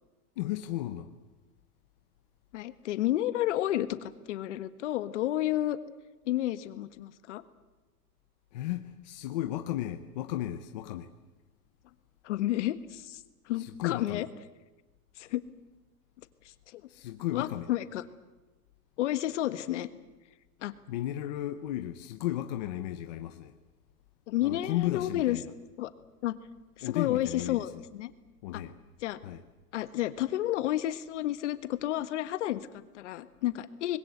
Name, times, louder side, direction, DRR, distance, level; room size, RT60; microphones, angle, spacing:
voice 1, 0.4-1.1 8.5-11.1 13.6-14.2 16.9-17.7 20.9-23.5 24.4-25.4 26.8-27.6 28.4-28.8 29.2-29.4, left 13 dB, 30° left, 0.7 m, -34 dB
voice 2, 2.5-5.8 6.2-7.4 12.2-14.3 15.2-15.4 16.4-16.8 17.3-18.1 19.0-19.9 20.6-20.7 24.3-25.4 25.8-25.9 26.2-26.4 26.8-28.1 28.5-28.6 29.0-29.2 29.7-34.0, left 14 dB, 45° left, 1.5 m, -31 dB
26.0 x 21.0 x 8.0 m
supercardioid pair, 170°, 48 cm